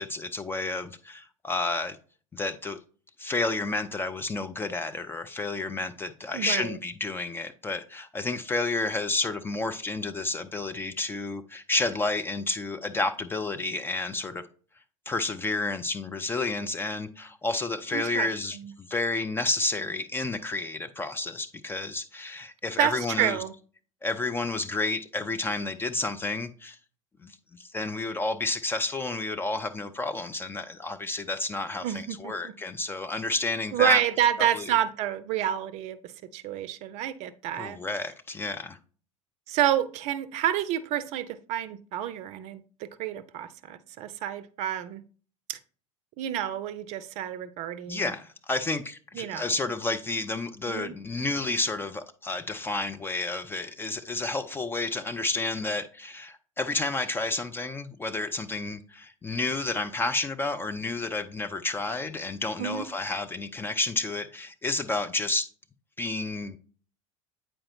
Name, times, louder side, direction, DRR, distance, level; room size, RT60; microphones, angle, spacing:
voice 1, 0.0-2.0 2.3-2.8 3.2-14.4 15.1-23.4 24.0-26.8 27.2-34.0 34.5-34.7 37.6-38.8 47.9-65.5 66.0-66.6, left 3 dB, 10° left, 0.4 m, -30 dB
voice 2, 6.3-6.8 17.9-18.3 18.5-18.7 22.8-23.5 31.8-32.5 33.7-37.8 39.5-45.0 45.5-45.6 46.2-48.1 49.1-49.5 50.7-50.9 62.6-62.9, right 11 dB, 40° right, 0.5 m, -29 dB
8.7 x 4.4 x 2.7 m
figure-of-eight pair, 75°, 18 cm